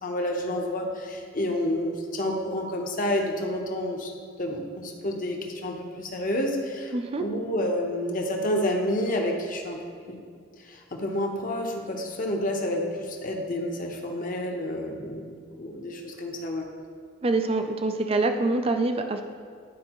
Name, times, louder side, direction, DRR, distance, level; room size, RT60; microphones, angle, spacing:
voice 1, 0.0-4.1 4.4-9.8 10.1-10.2 10.6-16.7, left 1 dB, 45° left, 1 dB, 0.9 m, -29 dB
voice 2, 6.9-7.2 17.2-19.2, right 2 dB, 30° right, 6 dB, 0.4 m, -25 dB
11.5 x 4.8 x 3.0 m, 2.1 s
head